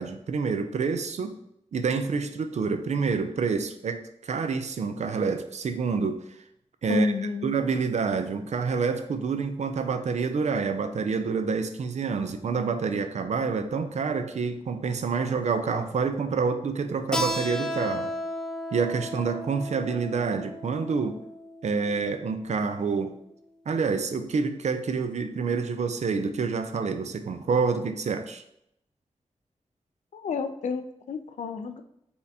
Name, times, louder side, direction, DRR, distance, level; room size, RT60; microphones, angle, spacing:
voice 1, 0.0-1.4 1.7-6.2 6.8-7.1 7.4-18.1 18.7-21.2 21.6-23.1 23.7-28.4, right 5 dB, 70° right, 8 dB, 0.4 m, -27 dB
voice 2, 6.9-7.5 30.1-31.8, left 4 dB, 90° left, 8 dB, 0.4 m, -30 dB
Keyboard (musical), 17.1-22.4, equal, 5° left, 0.4 m, -34 dB
4.3 x 3.5 x 2.7 m, 0.77 s
wide cardioid pair, 105°, 12 cm